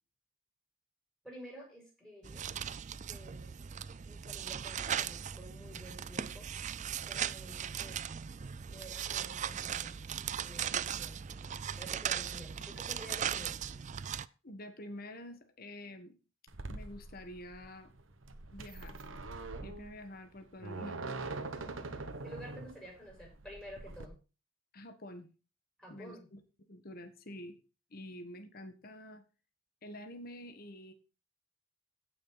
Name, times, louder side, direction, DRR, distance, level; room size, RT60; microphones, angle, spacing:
voice 1, 1.2-2.5 3.1-3.6 4.0-6.5 6.9-8.0 8.6-10.0 10.4-11.2 11.8-13.6 22.2-24.2 25.8-26.3, equal, 5° left, -3 dB, 6.5 m, -51 dB
sound 1, 2.2-14.3, right 9 dB, 40° right, 0.4 m, -38 dB
voice 2, 14.4-16.2 16.7-17.9 18.5-18.9 19.6-21.0 24.7-25.3 25.9-26.4 26.7-27.5 27.9-29.2 29.8-30.9, left 1 dB, 50° left, 7 dB, 1.4 m, -47 dB
sound 2, 16.5-24.1, right 3 dB, 80° right, 1.3 m, -43 dB
16.0 x 6.3 x 4.0 m, 0.33 s
head